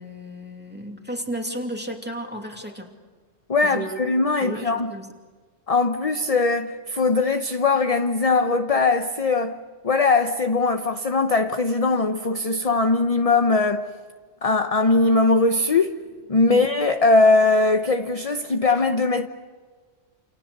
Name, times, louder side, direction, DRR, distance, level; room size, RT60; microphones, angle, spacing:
voice 1, 0.0-2.9 3.6-4.0 4.4-5.1 16.5-16.7, right 1 dB, 10° right, 2.6 m, -33 dB
voice 2, 3.5-4.9 5.7-13.9 14.4-15.9 16.3-19.3, left 3 dB, 35° left, 0.9 m, -20 dB
29.0 x 28.5 x 6.7 m
omnidirectional pair, 1.2 m